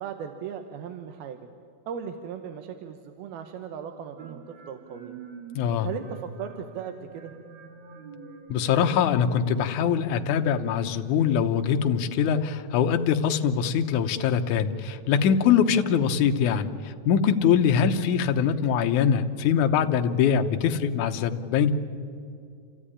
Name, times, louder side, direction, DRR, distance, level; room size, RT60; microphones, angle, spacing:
voice 1, 0.0-1.5 1.9-5.2 5.8-7.4, right 7 dB, 80° right, 6 dB, 2.9 m, -37 dB
sound 1, 4.2-11.9, right 6 dB, 55° right, 3.3 m, -46 dB
voice 2, 5.5-5.9 8.5-21.7, left 7 dB, 70° left, 5 dB, 2.1 m, -23 dB
29.0 x 14.0 x 9.9 m, 2.4 s
omnidirectional pair, 4.3 m